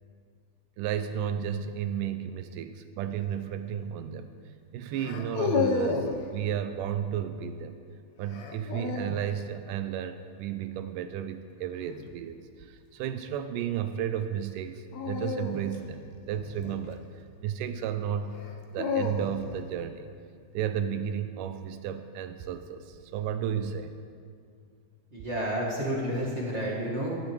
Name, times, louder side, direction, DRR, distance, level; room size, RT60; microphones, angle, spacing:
voice 1, 0.8-4.3 4.7-7.8 8.2-17.1 17.4-18.4 18.7-20.1 20.5-23.9, right 9 dB, 85° right, 10 dB, 1.9 m, -33 dB
sound 1, 3.1-3.4 5.0-6.2 8.3-9.3 11.7-12.1 14.9-17.3 18.3-19.6, left 5 dB, 75° left, 1.6 m, -32 dB
voice 2, 25.1-27.2, equal, 40° right, -6 dB, 0.9 m, -30 dB
18.5 x 12.0 x 3.2 m, 2.2 s
omnidirectional pair, 4.2 m